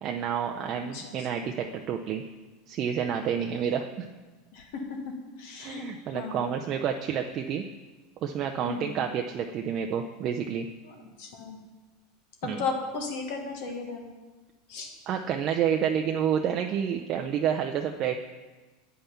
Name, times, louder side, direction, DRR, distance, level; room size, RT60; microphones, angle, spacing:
voice 1, 0.0-2.2 2.7-4.1 5.6-7.6 8.2-10.7 12.4-12.6 15.1-18.2, right 8 dB, 45° right, 3 dB, 0.5 m, -29 dB
voice 2, 0.7-1.5 3.5-3.6 4.5-4.8 5.4-6.6 8.6-9.0 10.8-11.6 12.6-14.1 14.7-14.9, left 4 dB, 65° left, 2 dB, 1.4 m, -36 dB
8.7 x 5.5 x 5.7 m, 1.2 s
hypercardioid pair, 100°, 0 cm